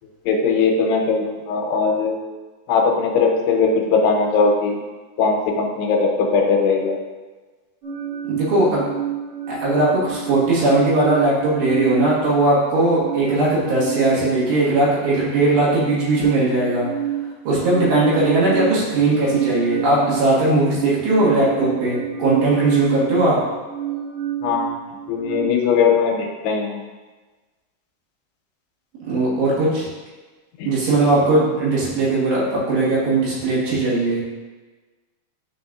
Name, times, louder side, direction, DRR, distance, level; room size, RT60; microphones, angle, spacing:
voice 1, 0.3-2.2 2.7-4.8 5.2-7.0 24.4-24.6 25.1-26.8 30.6-30.7, left 5 dB, 85° left, 1 dB, 2.8 m, -19 dB
sound 1, 7.8-25.4, right 10 dB, 40° right, 2.3 m, -29 dB
voice 2, 8.3-8.8 9.5-16.9 17.5-23.4 29.1-29.9 30.7-34.2, right 2 dB, 85° right, -7 dB, 4.1 m, -19 dB
11.0 x 4.1 x 2.6 m, 1.3 s
omnidirectional pair, 4.8 m